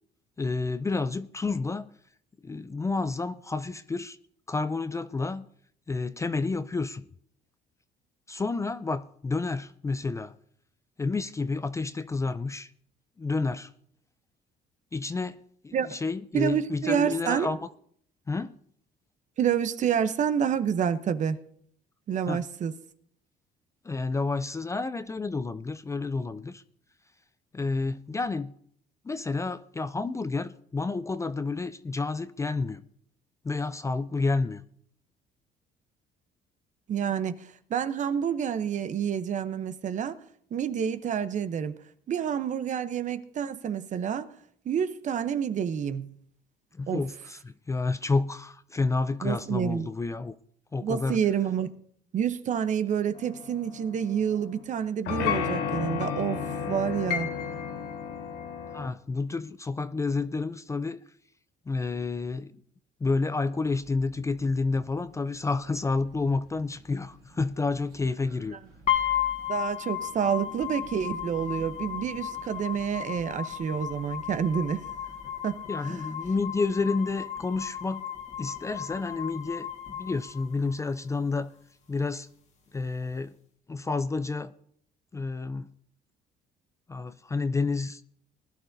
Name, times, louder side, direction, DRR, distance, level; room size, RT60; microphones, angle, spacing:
voice 1, 0.4-1.9 2.4-4.2 4.5-5.5 5.9-7.1 8.3-10.3 11.0-12.7 13.2-13.7 14.9-15.4 15.6-17.7 18.3-18.6 22.3-22.4 23.8-26.6 27.5-28.5 29.0-32.8 33.4-34.6 46.7-50.4 50.7-51.2 58.7-61.0 61.7-62.5 63.0-68.6 75.7-78.1 78.4-79.7 80.0-81.5 81.9-82.3 82.7-83.4 83.7-84.5 85.1-85.7 86.9-88.0, left 3 dB, 15° left, 0.4 m, -30 dB
voice 2, 16.3-17.5 19.4-21.4 22.1-22.7 36.9-40.1 40.5-41.7 42.1-44.3 44.7-46.1 46.9-47.0 49.2-49.9 50.8-51.7 52.1-57.3 69.5-74.9 75.4-76.1, right 8 dB, 45° right, 0.8 m, -28 dB
sound 1, 53.2-54.6 55.1-58.9, left 7 dB, 85° left, 1.2 m, -32 dB
sound 2, 63.7-75.3, right 2 dB, 85° right, 2.5 m, -52 dB
sound 3, 68.9-80.9, left 11 dB, 45° left, 1.7 m, -34 dB
20.0 x 11.0 x 2.6 m
cardioid pair, 110°, 17 cm